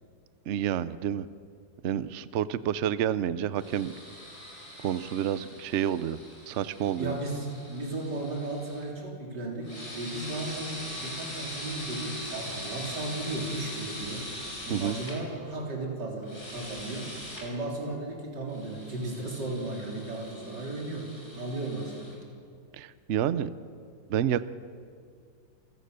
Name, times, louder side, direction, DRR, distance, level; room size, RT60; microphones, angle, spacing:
voice 1, 0.5-1.3 1.8-3.9 4.8-6.2 6.5-7.1 14.7-15.0 22.8-23.5 24.1-24.5, right 10 dB, 85° right, 15 dB, 0.6 m, -29 dB
sound 1, 3.6-8.8 9.6-15.2 16.2-17.5 18.5-22.2, left 1 dB, 35° left, 5.2 m, -42 dB
voice 2, 7.0-14.3 14.7-22.2, right 2 dB, 60° right, 0 dB, 4.3 m, -35 dB
28.5 x 16.0 x 6.8 m, 2.2 s
omnidirectional pair, 2.1 m